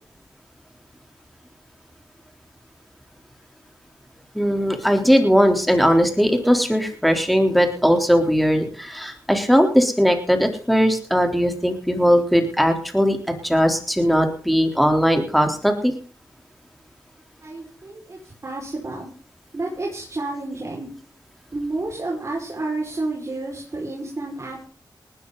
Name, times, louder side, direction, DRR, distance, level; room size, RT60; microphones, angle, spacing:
voice 1, 4.3-13.2 13.4-15.9, equal, ahead, 4 dB, 3.7 m, -19 dB
voice 2, 17.4-19.1 19.5-20.9 21.5-24.7, right 2 dB, 40° right, -3 dB, 5.5 m, -30 dB
19.5 x 13.0 x 4.1 m, 0.41 s
wide cardioid pair, 85°, 8 cm